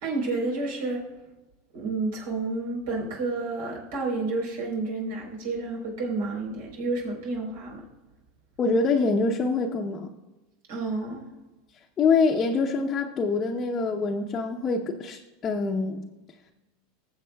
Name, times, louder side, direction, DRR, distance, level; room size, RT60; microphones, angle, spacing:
voice 1, 0.0-1.0 1.7-7.8 10.7-11.2, right 3 dB, 80° right, -2 dB, 3.9 m, -30 dB
voice 2, 8.6-10.1 12.0-16.0, left 4 dB, 25° left, 0 dB, 0.7 m, -25 dB
19.5 x 7.2 x 2.3 m, 1.1 s
supercardioid pair, 135°, 0 cm